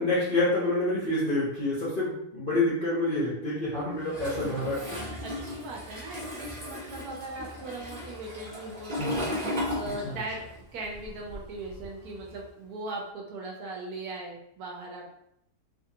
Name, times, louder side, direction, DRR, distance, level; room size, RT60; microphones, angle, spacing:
voice 1, 0.0-5.0, left 2 dB, 45° left, -8 dB, 0.7 m, -27 dB
Toilet flush, 4.1-10.5 10.8-12.4, left 1 dB, 40° right, 0.6 m, -36 dB
voice 2, 5.2-15.2, right 2 dB, 70° right, -1 dB, 1.0 m, -39 dB
Slam, 8.9-12.4 12.7-12.9, equal, 75° left, 1.2 m, -43 dB
2.8 x 2.6 x 2.7 m, 0.77 s
omnidirectional pair, 1.8 m